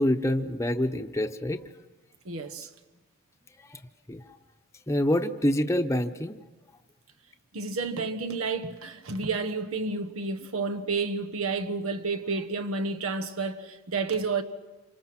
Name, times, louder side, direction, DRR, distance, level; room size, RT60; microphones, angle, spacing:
voice 1, 0.0-1.6 3.7-3.8 4.1-4.2 4.9-6.3, left 1 dB, 15° left, 0.9 m, -26 dB
voice 2, 2.2-2.7 7.5-14.4, right 4 dB, 85° right, 1.3 m, -30 dB
28.0 x 25.5 x 6.1 m
head